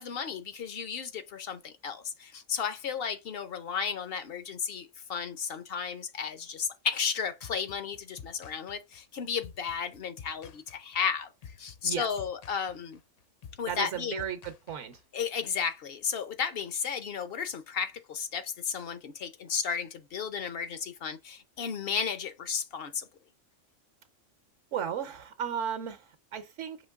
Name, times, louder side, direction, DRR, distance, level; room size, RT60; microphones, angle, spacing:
voice 1, 0.0-11.3 11.6-13.0 13.6-14.2 15.1-23.0, left 6 dB, 60° left, 0.7 m, -33 dB
sound 1, 7.4-15.2, left 7 dB, 85° left, 0.3 m, -50 dB
voice 2, 13.7-15.0 24.7-26.8, right 8 dB, 75° right, 1.1 m, -35 dB
5.0 x 3.0 x 3.5 m
omnidirectional pair, 1.3 m